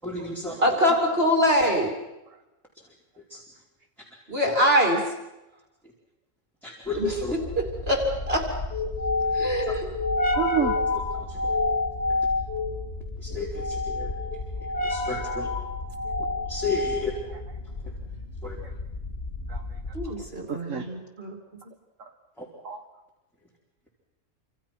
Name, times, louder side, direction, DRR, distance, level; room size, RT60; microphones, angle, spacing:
voice 1, 0.0-0.9 2.7-2.9 3.2-3.4 4.4-4.5 5.8-5.9 6.6-7.3 9.7-9.8 10.9-11.6 12.1-12.2 13.2-14.2 14.6-15.5 16.4-17.1 17.8-18.0 18.4-18.6 20.1-20.3 22.4-22.5, left 3 dB, ahead, -4 dB, 4.6 m, -34 dB
voice 2, 0.6-1.9 4.3-5.1 7.0-7.1 7.6-8.5 9.3-9.9 19.9-21.4, equal, 40° right, 2 dB, 3.2 m, -24 dB
sound 1, 6.9-20.3, left 2 dB, 45° left, 3.0 m, -29 dB
voice 3, 10.4-10.8 19.5-19.8 20.0-20.1 20.5-20.9 22.0-22.1 22.6-22.8, right 7 dB, 60° right, 3 dB, 1.7 m, -29 dB
27.5 x 26.5 x 6.0 m, 0.99 s
omnidirectional pair, 1.5 m